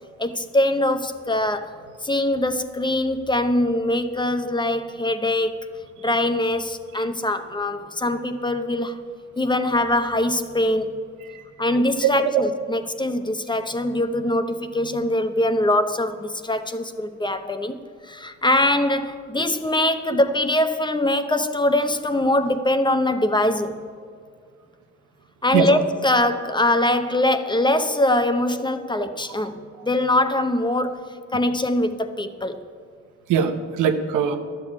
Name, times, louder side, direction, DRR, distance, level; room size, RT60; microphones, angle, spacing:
voice 1, 0.2-5.5 6.0-9.0 9.4-10.9 11.6-17.8 18.0-23.7 25.4-31.1 31.3-32.6, left 1 dB, 15° left, 9 dB, 0.7 m, -22 dB
voice 2, 12.0-12.4 25.5-25.7 29.0-29.1 33.3-34.4, right 8 dB, 85° right, 7 dB, 1.0 m, -21 dB
12.0 x 6.8 x 8.6 m, 2.1 s
cardioid pair, 90°, 30 cm